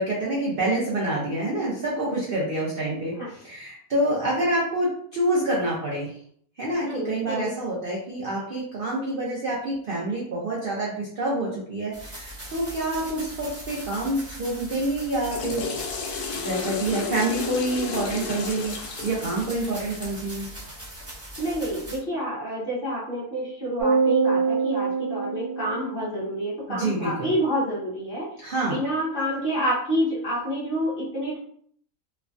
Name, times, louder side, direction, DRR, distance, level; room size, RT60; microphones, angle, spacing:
voice 1, 0.0-6.2 6.6-15.7 16.3-18.8 19.0-20.5 26.7-27.3 28.4-28.8, right 1 dB, 60° right, -4 dB, 0.5 m, -27 dB
voice 2, 6.9-7.5 21.4-28.3 28.7-31.4, equal, 40° left, -7 dB, 0.9 m, -28 dB
sound 1, 11.9-22.0, right 1 dB, 10° right, 0.8 m, -40 dB
Water / Toilet flush, 15.0-20.3, left 5 dB, 75° left, 1.1 m, -33 dB
sound 2, 23.8-26.3, right 5 dB, 90° right, 1.2 m, -24 dB
3.1 x 2.2 x 2.5 m, 0.63 s
omnidirectional pair, 1.7 m